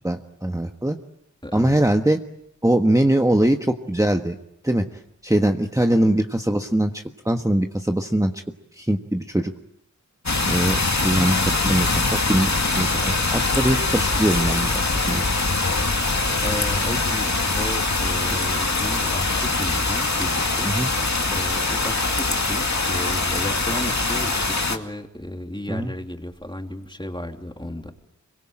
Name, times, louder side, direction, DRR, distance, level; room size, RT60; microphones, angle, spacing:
voice 1, 0.0-1.0 1.5-2.2 2.6-4.4 4.6-4.8 5.2-8.4 8.7-9.5 10.5-12.5 12.7-15.2 18.3-18.4 20.6-20.9 25.7-25.9, right 1 dB, 10° right, 4 dB, 1.4 m, -22 dB
voice 2, 1.4-1.8 16.4-20.7 21.3-27.9, left 1 dB, 15° left, 4 dB, 3.2 m, -34 dB
sound 1, 10.3-24.8, left 3 dB, 65° left, 2.4 m, -23 dB
26.0 x 23.5 x 8.9 m, 0.78 s
wide cardioid pair, 50°, 30 cm